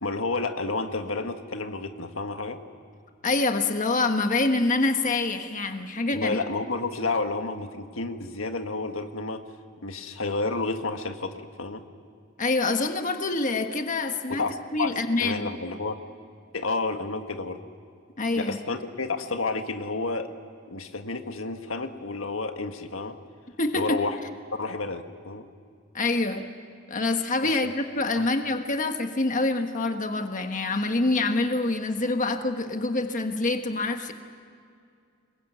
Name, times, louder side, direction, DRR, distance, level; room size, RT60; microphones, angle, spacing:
voice 1, 0.0-2.6 6.1-9.4 9.8-11.8 14.4-15.9 16.5-17.6 18.4-20.3 20.7-23.1 23.7-24.2 24.6-25.4 27.4-27.7, left 3 dB, 75° left, 6 dB, 1.6 m, -30 dB
voice 2, 3.2-6.4 12.4-14.5 14.7-15.4 18.2-18.6 23.6-24.0 25.9-26.4 26.9-34.1, left 2 dB, 40° left, 5 dB, 1.4 m, -26 dB
26.0 x 22.0 x 9.2 m, 2.3 s
head